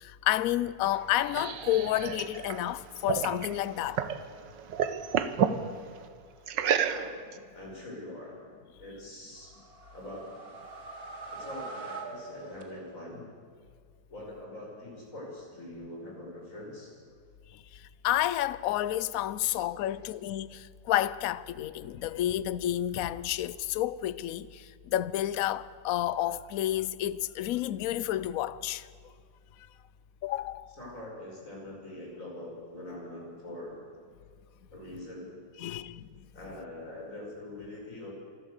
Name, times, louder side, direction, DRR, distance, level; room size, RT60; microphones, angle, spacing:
voice 1, 0.0-4.1 17.5-28.9 30.2-30.7 35.6-36.1, left 13 dB, 65° left, 0.9 m, -30 dB
sound 1, 0.8-4.2 4.5-5.6 6.5-7.3, right 8 dB, 75° right, 1.7 m, -30 dB
voice 2, 6.8-7.2 7.5-8.4 8.8-9.5 9.9-10.3 11.3-13.3 14.1-16.9 19.4-19.6 19.8-20.0 30.8-33.8 34.7-35.9 36.3-38.1, left 1 dB, 45° left, 6.2 m, -43 dB
sound 2, 9.4-13.2, right 3 dB, 55° right, 2.7 m, -43 dB
26.0 x 12.5 x 8.1 m
omnidirectional pair, 1.9 m